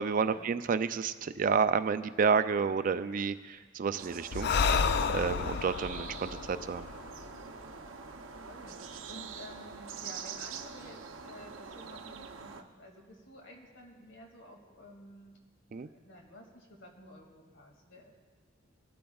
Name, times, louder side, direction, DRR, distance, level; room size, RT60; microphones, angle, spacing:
voice 1, 0.0-4.5 5.1-6.9 15.7-15.9, right 5 dB, 45° right, 12 dB, 0.3 m, -30 dB
sound 1, 3.9-12.6, right 5 dB, 85° right, 0.7 m, -45 dB
Breathing, 4.3-7.9, left 5 dB, 55° left, 0.4 m, -31 dB
voice 2, 8.4-15.4 15.7-18.1, left 1 dB, 70° left, 1 dB, 2.2 m, -52 dB
20.5 x 12.0 x 2.4 m, 1.5 s
head